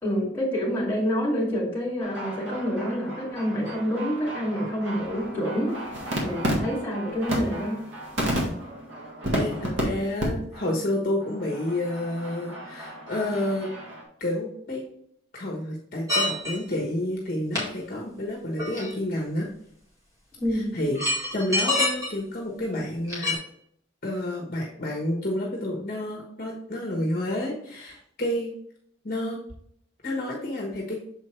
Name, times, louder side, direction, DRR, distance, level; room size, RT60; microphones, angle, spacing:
voice 1, 0.0-5.8 6.2-7.8 20.4-20.7, equal, 10° left, -5 dB, 2.3 m, -27 dB
sound 1, 2.0-9.8 10.2-10.3 10.5-10.8 11.2-14.0, right 1 dB, 75° right, 1.8 m, -33 dB
voice 2, 9.3-13.7 14.2-14.8 15.3-19.5 20.5-23.4 24.0-28.5 29.0-29.4 30.0-31.0, left 1 dB, 45° left, -2 dB, 1.2 m, -29 dB
sound 2, 16.1-16.7 17.5-17.6 18.6-19.1 20.5-20.6 20.9-22.1 23.0-23.3, left 1 dB, 15° right, 2.0 m, -26 dB
6.7 x 4.5 x 3.2 m, 0.69 s
head